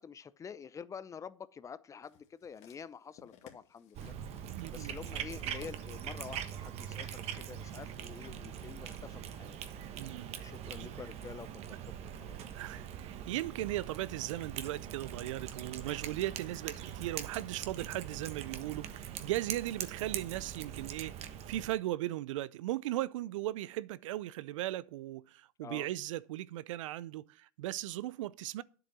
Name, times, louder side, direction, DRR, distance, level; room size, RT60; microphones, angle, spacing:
voice 1, 0.0-4.2 4.7-9.6 10.4-12.4 12.7-12.8 25.6-25.9, left 6 dB, 20° left, 0.6 m, -48 dB
sound 1, 2.0-8.4 9.1-9.2, left 9 dB, 45° left, 2.1 m, -61 dB
Cat, 3.9-21.7, right 9 dB, 40° right, 1.2 m, -42 dB
voice 2, 4.4-4.9 10.0-10.3 10.8-10.9 12.5-28.6, right 15 dB, 70° right, 0.5 m, -37 dB
9.8 x 7.9 x 6.1 m
hypercardioid pair, 115°, 17 cm